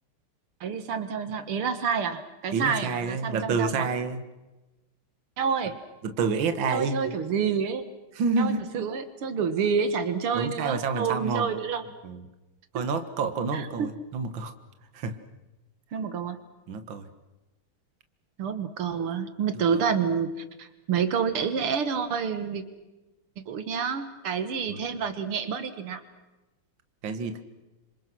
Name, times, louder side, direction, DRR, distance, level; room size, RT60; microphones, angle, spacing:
voice 1, 0.6-3.9 5.4-5.8 6.7-7.9 8.4-11.8 13.5-13.9 15.9-16.4 18.4-20.3 20.6-22.6 23.5-26.0, right 6 dB, 85° right, 10 dB, 2.5 m, -28 dB
voice 2, 2.5-4.2 6.0-7.2 8.1-8.7 10.3-11.5 12.0-12.2 12.7-14.5 14.9-15.2 16.7-17.1 19.7-19.8 24.7-24.8 27.0-27.4, right 4 dB, 65° right, 9 dB, 2.3 m, -28 dB
29.5 x 26.5 x 6.2 m, 1.1 s
omnidirectional pair, 2.3 m